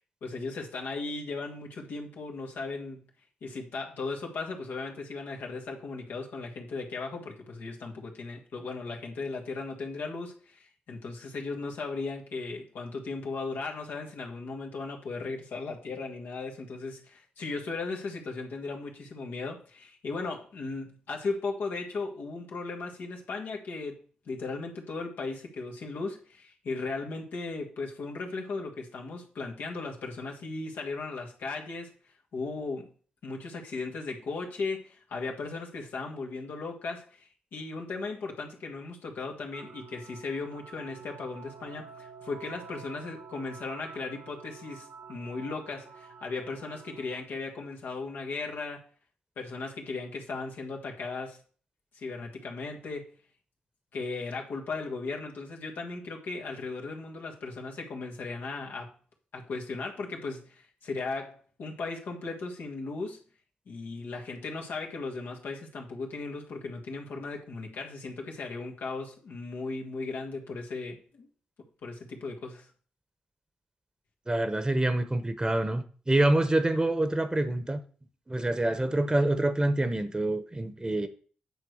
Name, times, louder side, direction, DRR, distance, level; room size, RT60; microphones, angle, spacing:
voice 1, 0.2-3.0 3.4-31.9 32.3-32.9 33.2-48.9 49.3-51.4 51.9-53.1 53.9-58.9 59.3-63.2 63.7-71.3 71.8-72.7, left 3 dB, 80° left, 1.7 m, -37 dB
sound 1, 39.5-47.2, right 5 dB, 70° right, 1.0 m, -49 dB
voice 2, 74.3-77.8 78.3-81.1, right 1 dB, 25° right, 1.2 m, -26 dB
8.9 x 3.2 x 6.6 m
supercardioid pair, 45°, 3 cm